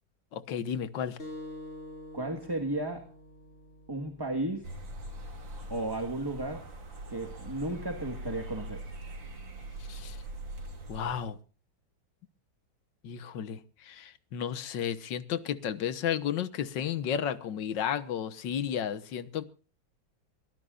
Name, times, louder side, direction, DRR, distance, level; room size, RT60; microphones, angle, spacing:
voice 1, 0.3-1.2 9.9-10.2 10.9-11.4 13.0-19.5, left 8 dB, 70° left, 1.9 m, -33 dB
sound 1, 1.2-6.3, left 1 dB, 30° left, 6.6 m, -48 dB
voice 2, 2.1-3.1 3.9-4.7 5.7-6.7 7.1-8.8, right 2 dB, 15° right, 1.5 m, -34 dB
sound 2, 4.6-11.3, right 1 dB, 70° right, 3.9 m, -42 dB
24.0 x 17.5 x 2.5 m
omnidirectional pair, 2.2 m